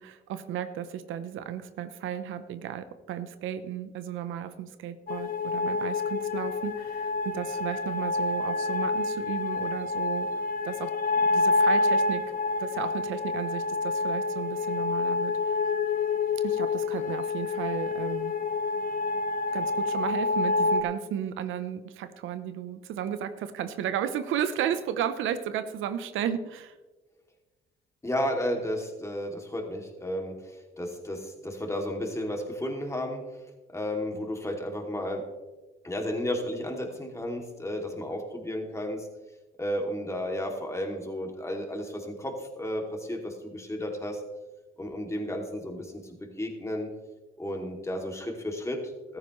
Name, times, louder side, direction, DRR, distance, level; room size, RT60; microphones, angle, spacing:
voice 1, 0.0-10.3 10.6-12.3 12.6-15.5 16.4-18.3 19.5-26.7, right 9 dB, 85° right, 11 dB, 0.8 m, -34 dB
sound 1, 5.1-20.8, left 3 dB, 45° left, 1.1 m, -28 dB
voice 2, 28.0-33.2 33.7-35.3 35.8-39.1 39.6-44.2 44.8-46.9 47.4-49.2, left 1 dB, 15° left, 2 dB, 2.6 m, -33 dB
15.0 x 13.0 x 3.2 m, 1.2 s
cardioid pair, 90°, 20 cm